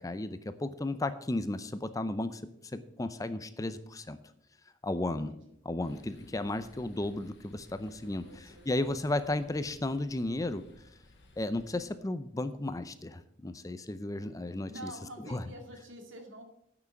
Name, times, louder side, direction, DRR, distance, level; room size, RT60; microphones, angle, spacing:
voice 1, 0.0-4.2 4.8-5.3 5.6-10.9 11.4-14.9 15.2-15.4, left 2 dB, 15° left, 12 dB, 0.5 m, -34 dB
voice 2, 5.3-5.6 8.0-9.0 14.7-16.4, right 1 dB, 80° right, 4 dB, 2.1 m, -48 dB
sound 1, 5.8-11.9, left 1 dB, 65° left, 1.7 m, -58 dB
9.2 x 6.1 x 7.7 m, 0.76 s
head